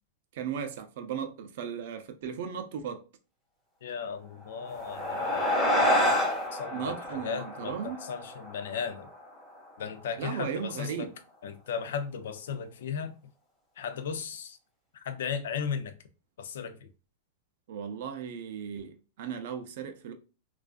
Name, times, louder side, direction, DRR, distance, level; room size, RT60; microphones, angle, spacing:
voice 1, 0.3-3.0 6.7-8.1 10.2-11.1 17.7-20.1, right 7 dB, 60° right, 0.5 m, -36 dB
voice 2, 3.8-6.2 6.5-9.1 9.8-11.1 11.4-13.1 13.8-14.6 14.9-15.9 16.4-16.9, left 7 dB, 75° left, 0.4 m, -36 dB
sound 1, 4.5-9.3, left 1 dB, 5° left, 0.8 m, -28 dB
2.4 x 2.3 x 2.4 m
supercardioid pair, 155°, 0 cm